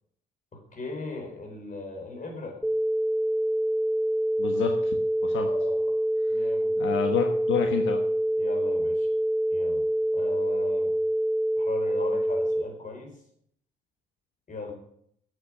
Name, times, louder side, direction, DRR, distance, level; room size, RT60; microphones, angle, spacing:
voice 1, 0.5-2.6 5.5-5.9 6.3-7.1 8.4-9.1 9.5-9.8 10.1-10.9 11.6-13.1 14.5-14.7, left 3 dB, 40° left, 2 dB, 4.7 m, -38 dB
sound 1, 2.6-12.6, right 1 dB, ahead, 1.0 m, -26 dB
voice 2, 4.4-5.0 5.2-5.5 6.8-8.0, left 8 dB, 80° left, 4 dB, 1.3 m, -28 dB
9.6 x 8.7 x 6.3 m, 0.69 s
cardioid pair, 90°, 20 cm